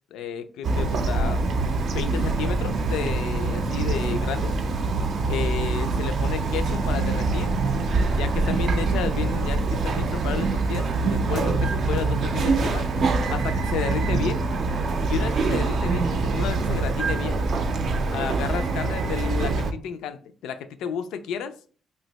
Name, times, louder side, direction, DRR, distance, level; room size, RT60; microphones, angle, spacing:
voice 1, 0.1-1.4 1.9-4.5 5.3-7.6 8.2-12.8 13.3-14.4 15.1-17.4 18.1-21.5, left 7 dB, 85° left, 11 dB, 0.3 m, -32 dB
Bird vocalization bird call bird song, 0.6-19.7, right 3 dB, 60° right, 0.4 m, -24 dB
2.7 x 2.2 x 3.9 m, 0.42 s
cardioid pair, 90°, 0 cm